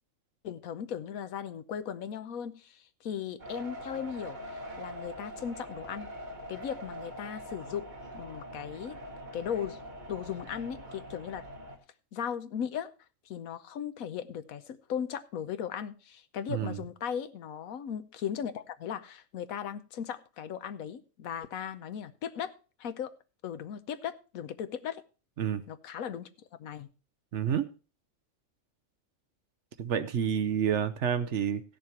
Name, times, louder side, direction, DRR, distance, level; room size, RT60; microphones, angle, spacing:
voice 1, 0.4-6.1 6.5-9.0 9.3-9.8 10.1-11.4 12.1-12.9 13.3-23.1 23.4-25.0 25.7-26.3 26.6-26.9, left 8 dB, 85° left, 11 dB, 1.2 m, -37 dB
sound 1, 3.4-11.8, equal, 35° right, 1.9 m, -43 dB
voice 2, 16.5-16.8 25.4-25.6 27.3-27.7 29.8-31.6, right 8 dB, 60° right, 11 dB, 1.0 m, -29 dB
15.5 x 6.7 x 4.5 m, 0.34 s
omnidirectional pair, 1.4 m